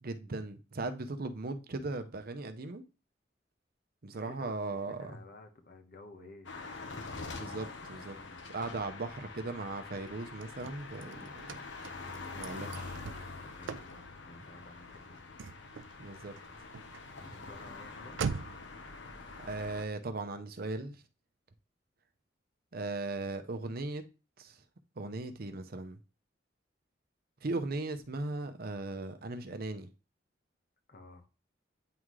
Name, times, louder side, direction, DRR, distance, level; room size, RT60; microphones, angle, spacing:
voice 1, 0.0-2.8 4.0-5.1 7.1-8.2 8.5-11.3 12.3-13.0 16.0-16.3 19.4-21.0 22.7-24.0 24.4-24.6 25.0-26.0 27.4-29.9, right 2 dB, 55° right, 0.7 m, -38 dB
voice 2, 4.1-6.5 8.1-8.4 11.0-11.3 13.1-15.2 17.2-18.2 30.9-31.3, left 2 dB, 55° left, 1.2 m, -53 dB
sound 1, 6.5-19.9, left 3 dB, 75° left, 1.0 m, -45 dB
Car / Slam, 10.1-18.7, right 5 dB, 90° right, 0.4 m, -44 dB
9.3 x 3.7 x 3.2 m
head